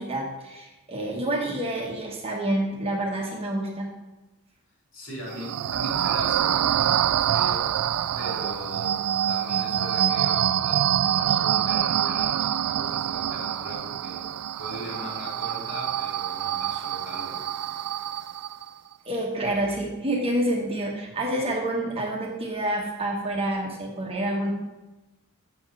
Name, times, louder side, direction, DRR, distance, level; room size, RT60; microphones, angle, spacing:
voice 1, 0.0-3.9 19.0-24.5, right 1 dB, 25° right, -2 dB, 1.3 m, -28 dB
voice 2, 4.9-7.7 8.1-9.0 9.3-14.3 14.6-17.4, left 1 dB, 65° left, -4 dB, 2.9 m, -39 dB
sound 1, 5.3-18.7, right 10 dB, 85° right, 0.3 m, -26 dB
7.0 x 4.4 x 6.0 m, 1.1 s
head